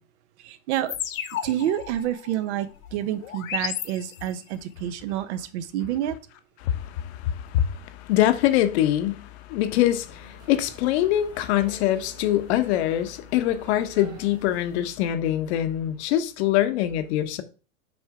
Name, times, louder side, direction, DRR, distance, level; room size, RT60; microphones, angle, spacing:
voice 1, 0.4-1.0 1.4-6.2, right 11 dB, 60° right, 0.8 m, -28 dB
sound 1, 0.9-4.6, left 10 dB, 80° left, 1.0 m, -34 dB
voice 2, 6.6-17.4, left 12 dB, 55° left, 1.0 m, -24 dB
sound 2, 9.8-14.9, right 5 dB, 35° right, 1.6 m, -49 dB
6.2 x 3.3 x 4.9 m
hypercardioid pair, 130°, 40 cm